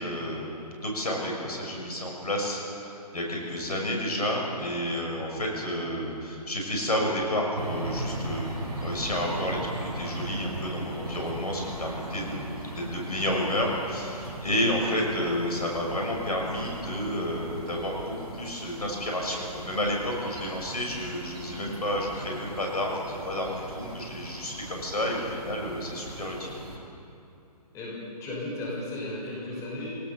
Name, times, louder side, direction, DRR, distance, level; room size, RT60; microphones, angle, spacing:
voice 1, 0.0-2.6 3.1-8.5 8.8-26.5, left 1 dB, 70° left, 0 dB, 6.2 m, -30 dB
sound 1, 7.6-26.8, right 1 dB, 40° right, 5.3 m, -39 dB
voice 2, 28.2-30.0, left 1 dB, 15° left, -5 dB, 6.0 m, -35 dB
22.5 x 18.5 x 7.1 m, 2.8 s
figure-of-eight pair, 135°, 21 cm